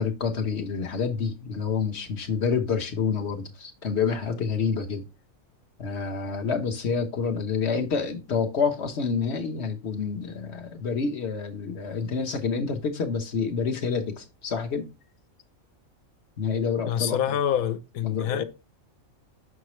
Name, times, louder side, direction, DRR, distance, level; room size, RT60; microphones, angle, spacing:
voice 1, 0.0-5.0 5.8-14.9 16.4-17.2 18.0-18.4, left 5 dB, 55° left, 1.3 m, -28 dB
voice 2, 16.9-18.4, left 9 dB, 85° left, 1.1 m, -26 dB
6.2 x 5.9 x 3.1 m
omnidirectional pair, 1.4 m